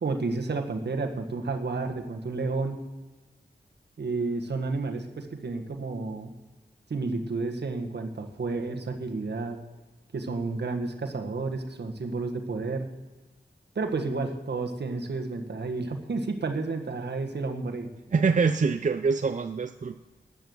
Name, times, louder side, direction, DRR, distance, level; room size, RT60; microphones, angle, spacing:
voice 1, 0.0-2.8 4.0-6.3 6.9-9.6 10.1-12.9 13.7-17.9, right 3 dB, 70° right, 5 dB, 1.5 m, -31 dB
voice 2, 18.1-20.0, right 5 dB, 45° right, 8 dB, 0.5 m, -25 dB
12.5 x 8.4 x 8.0 m, 1.2 s
wide cardioid pair, 65°, 18 cm